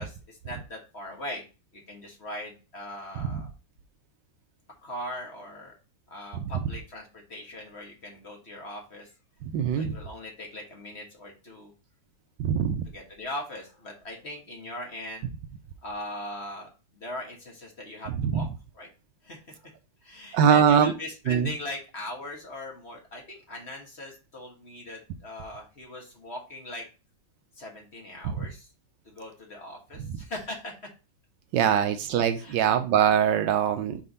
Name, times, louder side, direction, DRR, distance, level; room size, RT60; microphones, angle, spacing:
voice 1, 0.0-1.4 1.7-3.5 4.8-5.7 6.1-9.1 9.8-11.7 12.8-15.3 15.8-18.5 18.7-18.9 19.2-19.7 20.0-26.8 27.5-28.7 29.0-30.7 31.7-31.8 32.4-32.6, left 1 dB, 35° left, 0 dB, 1.6 m, -40 dB
voice 2, 9.5-9.9 12.4-12.8 18.2-18.4 20.3-20.9 21.3-21.5 28.2-28.3 31.5-34.0, right 8 dB, 75° right, 9 dB, 1.2 m, -22 dB
5.0 x 3.7 x 5.3 m, 0.32 s
omnidirectional pair, 2.1 m